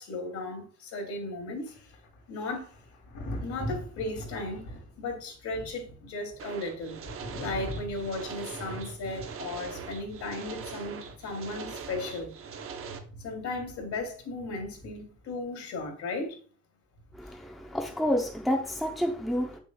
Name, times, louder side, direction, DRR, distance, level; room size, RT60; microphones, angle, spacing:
voice 1, 0.0-2.0 2.3-2.8 3.4-7.0 7.4-12.3 13.2-16.4, left 2 dB, 65° left, 2.6 m, -36 dB
Thunder, 1.7-15.3 16.9-17.2, left 1 dB, 85° left, 2.7 m, -43 dB
sound 1, 6.4-13.0, right 6 dB, 45° right, 0.9 m, -42 dB
voice 2, 17.1-19.6, equal, ahead, 0.6 m, -29 dB
7.8 x 6.3 x 2.3 m
cardioid pair, 165°, 30 cm